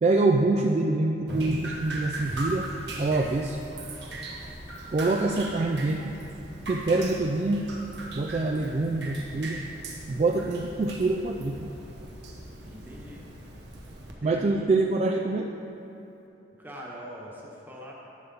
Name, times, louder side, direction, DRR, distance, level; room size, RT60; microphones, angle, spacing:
voice 1, 0.0-2.7 3.0-3.6 4.9-6.2 6.7-7.7 8.1-9.6 10.1-11.7 14.2-15.5, right 2 dB, 35° right, 2 dB, 0.3 m, -25 dB
Drip, 1.3-14.1, right 1 dB, 70° right, 1.1 m, -39 dB
voice 2, 12.6-13.3 14.2-14.7 16.6-17.9, equal, 10° right, -4 dB, 1.2 m, -43 dB
11.0 x 6.8 x 3.9 m, 2.9 s
head